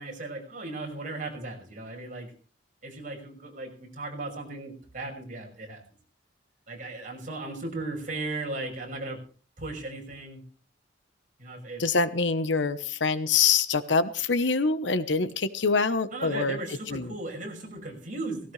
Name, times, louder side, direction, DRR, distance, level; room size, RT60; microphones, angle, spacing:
voice 1, 0.0-2.3 2.8-5.8 6.7-9.2 9.6-10.4 11.4-11.8 16.1-18.5, right 2 dB, 45° right, 0 dB, 5.9 m, -36 dB
voice 2, 11.8-16.6 16.9-17.1, left 4 dB, 70° left, 12 dB, 1.0 m, -25 dB
18.5 x 17.0 x 3.3 m, 0.41 s
head